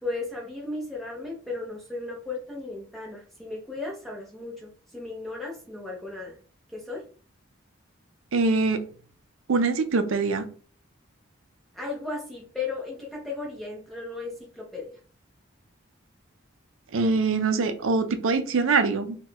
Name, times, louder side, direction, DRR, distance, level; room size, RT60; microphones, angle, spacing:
voice 1, 0.0-6.4 6.7-7.0 11.7-14.9, left 3 dB, ahead, -2 dB, 0.6 m, -35 dB
voice 2, 8.3-8.8 9.5-10.4 16.9-19.2, right 4 dB, 75° right, 9 dB, 0.5 m, -23 dB
2.9 x 2.3 x 3.6 m, 0.41 s
head